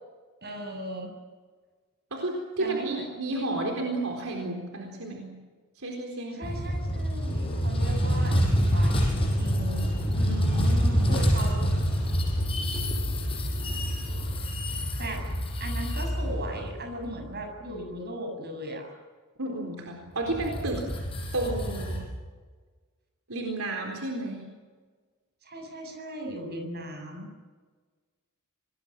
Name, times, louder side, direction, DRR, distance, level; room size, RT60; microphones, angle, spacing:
voice 1, 0.4-1.1 2.6-3.5 6.3-8.4 8.7-9.9 11.1-11.8 15.0-15.2 15.6-18.9 25.4-27.3, right 1 dB, 45° right, 3 dB, 7.3 m, -37 dB
voice 2, 2.1-5.3 5.8-6.8 10.1-11.2 19.4-20.9 21.3-22.1 23.3-24.5, right 2 dB, 70° right, 1 dB, 4.2 m, -32 dB
sound 1, 6.4-17.3 20.3-22.0, equal, 25° left, 6.3 m, -27 dB
27.0 x 21.0 x 7.5 m, 1.4 s
head